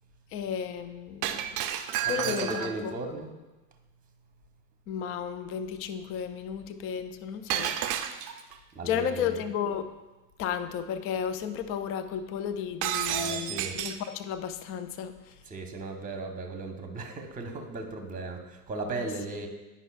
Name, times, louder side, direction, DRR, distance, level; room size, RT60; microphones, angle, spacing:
voice 1, 0.3-1.5 2.0-2.9 4.9-7.8 8.8-9.9 10.4-15.3 19.0-19.1, left 8 dB, 30° left, 10 dB, 0.4 m, -33 dB
Shatter, 1.2-2.9 7.5-8.6 12.8-14.1, right 10 dB, 40° right, 0.5 m, -31 dB
voice 2, 2.0-3.3 8.7-9.4 13.1-13.8 15.5-19.5, right 3 dB, 15° right, 4 dB, 1.0 m, -36 dB
9.8 x 5.5 x 2.4 m, 1.1 s
hypercardioid pair, 85°, 49 cm